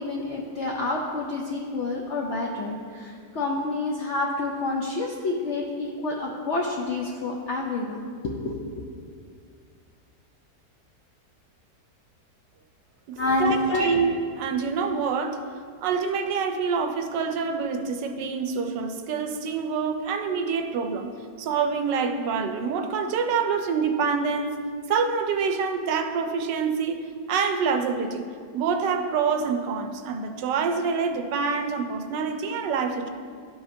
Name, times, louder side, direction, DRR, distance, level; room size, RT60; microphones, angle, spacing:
voice 1, 0.0-8.8 13.2-14.0, left 2 dB, 70° left, -1 dB, 0.6 m, -28 dB
voice 2, 13.1-15.4 15.8-21.1 21.4-24.6 24.9-28.3 28.5-33.1, right 5 dB, 80° right, 6 dB, 1.2 m, -26 dB
12.0 x 5.0 x 2.6 m, 2.2 s
omnidirectional pair, 1.9 m